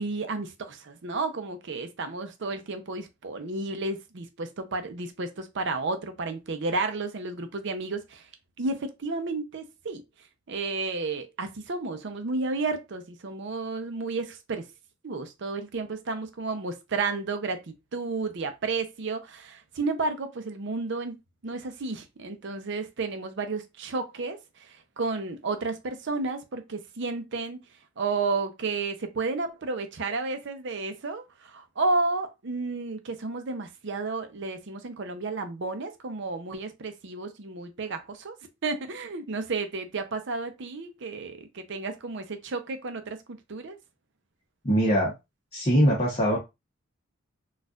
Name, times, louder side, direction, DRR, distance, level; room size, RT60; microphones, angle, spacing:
voice 1, 0.0-8.3 8.6-10.0 10.5-14.7 15.0-21.2 21.4-27.6 28.0-38.3 38.6-43.8, right 3 dB, 65° right, 0.6 m, -32 dB
voice 2, 44.6-45.1 45.5-46.4, equal, 30° left, 0.9 m, -22 dB
4.2 x 2.4 x 2.4 m
head